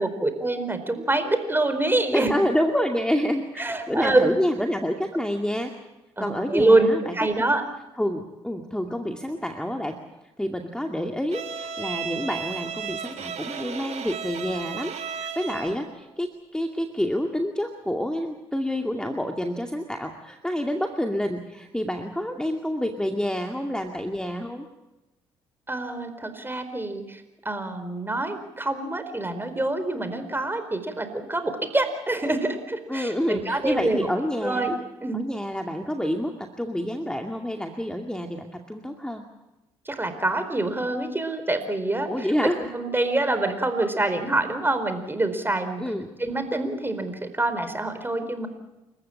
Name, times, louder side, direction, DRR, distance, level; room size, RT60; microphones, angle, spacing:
voice 1, 0.0-2.3 3.6-4.3 6.2-7.6 25.7-34.1 34.4-34.7 35.0-35.2 39.9-42.1 42.7-45.8 46.2-48.5, right 2 dB, 15° right, 9 dB, 4.3 m, -25 dB
voice 2, 2.1-5.7 6.2-7.4 8.0-10.0 10.4-24.7 32.9-34.7 35.1-39.2 42.1-42.6 45.8-46.2, equal, 5° left, 3 dB, 2.3 m, -28 dB
Bowed string instrument, 11.3-15.9, right 7 dB, 50° right, 2.7 m, -34 dB
28.5 x 15.0 x 8.7 m, 1.0 s
hypercardioid pair, 50°, 14 cm